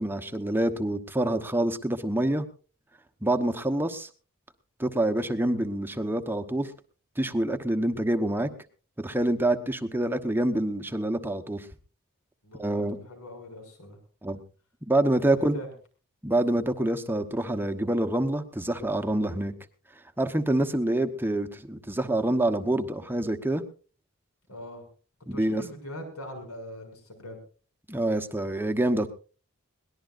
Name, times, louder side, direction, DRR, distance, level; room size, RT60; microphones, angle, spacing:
voice 1, 0.0-2.4 3.2-4.1 4.8-6.7 7.2-8.5 9.0-11.7 12.6-13.0 14.2-14.4 14.9-15.6 16.2-19.5 20.2-23.6 25.3-25.6 27.9-29.1, right 1 dB, 10° right, 8 dB, 1.0 m, -26 dB
voice 2, 12.4-14.0 15.3-15.7 24.5-24.8 25.3-27.4, equal, 80° left, 4 dB, 6.5 m, -42 dB
22.0 x 18.5 x 2.5 m, 0.37 s
head